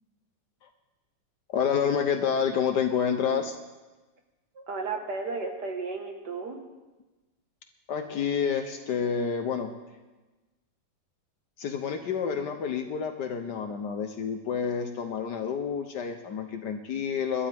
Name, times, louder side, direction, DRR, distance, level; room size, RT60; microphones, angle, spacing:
voice 1, 1.5-3.6 7.9-9.7 11.6-17.5, left 7 dB, 65° left, 6 dB, 1.4 m, -29 dB
voice 2, 4.6-6.6, right 4 dB, 60° right, 3 dB, 2.2 m, -34 dB
25.5 x 12.0 x 3.5 m, 1.2 s
omnidirectional pair, 2.1 m